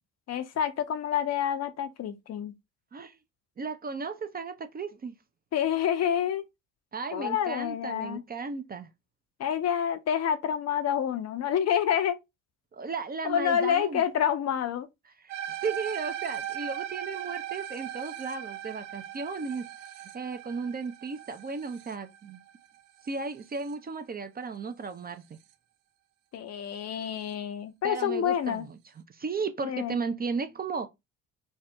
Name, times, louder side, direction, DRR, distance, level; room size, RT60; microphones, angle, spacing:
voice 1, 0.3-2.5 5.5-6.4 7.1-8.2 9.4-12.2 13.2-14.9 26.3-28.7 29.6-30.0, left 9 dB, 45° left, 0.5 m, -28 dB
voice 2, 3.6-5.2 6.9-8.9 12.7-14.0 15.2-19.6 20.1-22.4 23.0-25.4 27.8-28.8 29.1-30.9, right 4 dB, 25° right, 0.5 m, -35 dB
sound 1, 15.3-23.7, right 10 dB, 75° right, 0.5 m, -39 dB
2.7 x 2.1 x 3.4 m
hypercardioid pair, 60°, 38 cm